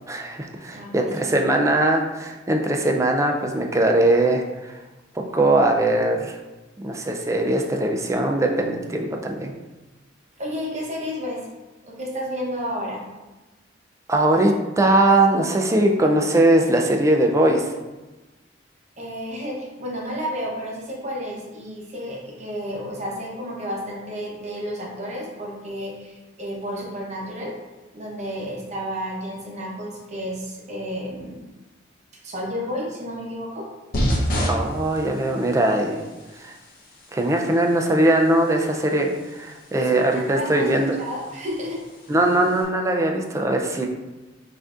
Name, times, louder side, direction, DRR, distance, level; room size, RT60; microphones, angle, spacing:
voice 1, 0.1-4.7 5.3-6.4 6.8-9.5 14.1-17.7 34.5-36.0 36.3-36.5 37.1-41.0 42.1-43.9, right 1 dB, 15° right, 2 dB, 0.3 m, -20 dB
voice 2, 0.7-1.4 10.4-11.5 11.9-13.0 19.0-27.5 27.9-31.4 32.2-33.6 39.7-40.0 40.3-40.7 41.0-41.8, equal, 35° right, -2 dB, 0.8 m, -31 dB
sound 1, 33.9-42.6, equal, 50° left, 0.8 m, -32 dB
5.8 x 2.6 x 2.4 m, 1.1 s
head